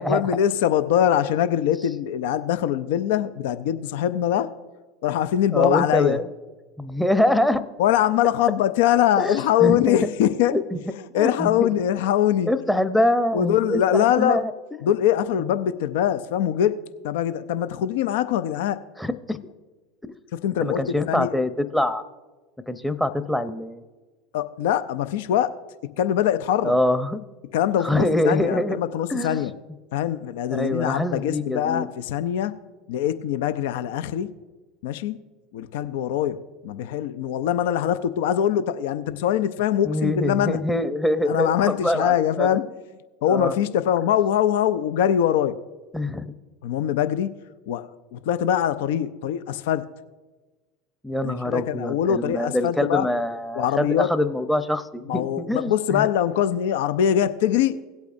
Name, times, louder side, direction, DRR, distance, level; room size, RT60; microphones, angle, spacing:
voice 1, 0.0-4.5 5.0-6.2 7.8-10.6 11.1-12.5 13.3-14.4 14.8-16.8 17.0-18.8 20.3-21.4 24.3-25.5 26.0-26.7 27.5-29.5 29.9-32.5 32.9-34.3 34.8-35.2 35.5-40.6 41.3-42.6 43.2-45.6 46.6-47.3 47.7-49.9 51.2-53.1 53.5-54.1 55.1-57.8, left 10 dB, 65° left, 13 dB, 0.4 m, -23 dB
voice 2, 5.5-6.3 6.8-7.6 9.2-10.0 10.5-10.6 11.1-11.7 12.5-14.5 19.0-19.4 20.6-22.0 22.7-23.8 26.6-27.2 27.8-28.8 29.1-29.4 30.5-31.9 39.8-42.5 43.3-43.6 45.9-46.3 51.0-56.1, left 1 dB, 5° left, 9 dB, 0.7 m, -24 dB
17.5 x 8.2 x 2.6 m, 1.2 s
hypercardioid pair, 75°, 0 cm